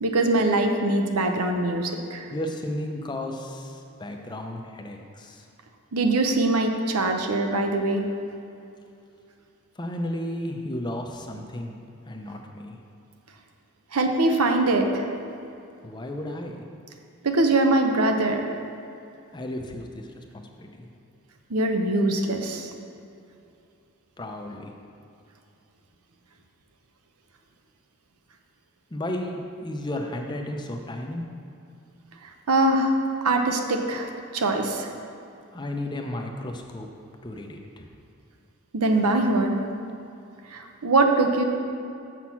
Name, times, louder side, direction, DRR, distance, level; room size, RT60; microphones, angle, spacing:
voice 1, 0.0-2.3 5.9-8.0 13.9-15.1 17.2-18.4 21.5-22.7 32.2-33.0 33.2-34.9 38.7-39.6 40.5-41.4, right 2 dB, 85° right, 4 dB, 0.8 m, -23 dB
voice 2, 2.3-5.5 9.8-11.7 12.1-12.8 15.8-16.6 19.3-20.9 24.2-24.7 28.9-31.3 35.5-36.9 37.2-37.9, left 1 dB, 20° left, 3 dB, 0.5 m, -33 dB
7.3 x 6.1 x 5.7 m, 2.6 s
head